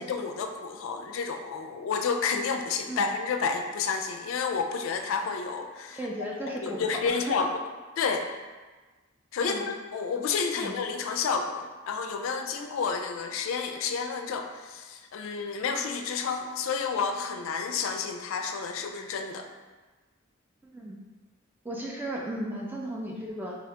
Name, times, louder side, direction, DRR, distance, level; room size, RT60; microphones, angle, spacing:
voice 1, 0.0-6.0 6.5-7.5 8.0-8.3 9.3-19.5, left 5 dB, 85° left, 5 dB, 0.3 m, -30 dB
voice 2, 5.9-7.4 9.4-9.6 10.6-10.7 20.6-20.9 21.6-23.6, right 1 dB, 10° right, -3 dB, 0.4 m, -35 dB
2.8 x 2.7 x 3.2 m, 1.3 s
head